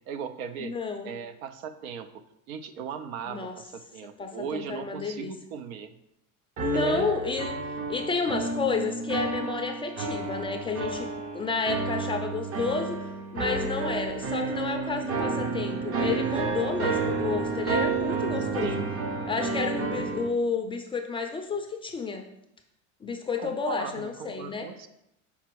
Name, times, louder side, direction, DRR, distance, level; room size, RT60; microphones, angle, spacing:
voice 1, 0.1-0.7 1.0-2.2 2.5-5.9 6.7-7.1 18.6-18.9 23.4-24.9, right 7 dB, 85° right, 10 dB, 0.7 m, -38 dB
voice 2, 0.6-1.1 3.3-3.5 4.2-5.3 6.6-7.5 7.9-11.1 11.3-13.0 13.3-18.8 19.3-22.2 23.0-24.7, left 4 dB, 15° left, 3 dB, 0.3 m, -31 dB
sound 1, 6.6-20.3, right 4 dB, 35° right, 0.6 m, -30 dB
5.8 x 4.2 x 4.5 m, 0.81 s
supercardioid pair, 130°, 40 cm